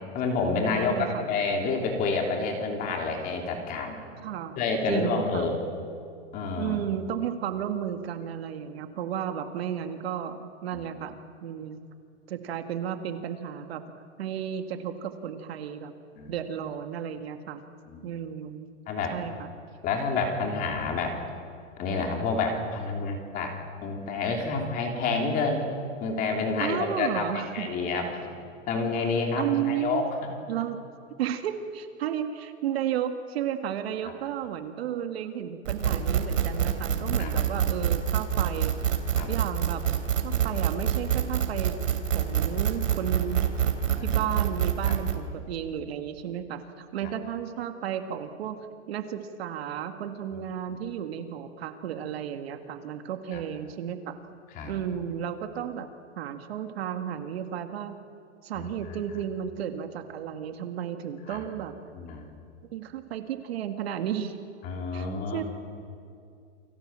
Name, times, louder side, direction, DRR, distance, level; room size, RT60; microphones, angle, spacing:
voice 1, 0.1-4.0 4.6-5.5 6.3-6.8 10.7-10.8 16.2-16.3 17.8-18.1 18.9-19.1 19.8-21.2 21.8-23.5 23.8-25.6 26.0-28.3 28.7-30.0 34.0-34.1 37.2-37.3 39.1-39.3 44.0-44.2 53.3-53.4 54.5-54.7 58.5-58.7 61.3-61.4 61.9-62.2 64.6-65.4, left 4 dB, 20° left, 2 dB, 3.3 m, -29 dB
voice 2, 0.6-1.3 4.2-4.6 4.9-5.5 6.6-11.8 12.3-13.8 14.2-15.9 16.3-17.6 18.0-18.7 19.1-19.5 26.6-27.7 28.9-29.1 29.4-30.1 30.5-30.8 31.2-38.7 39.3-39.8 40.2-41.7 42.1-43.4 44.0-48.6 48.9-54.2 54.7-55.9 56.2-58.0 58.4-61.7 62.7-64.4 64.9-65.4, right 9 dB, 50° right, 7 dB, 1.9 m, -33 dB
sound 1, 35.7-45.2, right 9 dB, 75° right, 3.4 m, -26 dB
29.0 x 23.0 x 7.5 m, 2.4 s
hypercardioid pair, 165°, 38 cm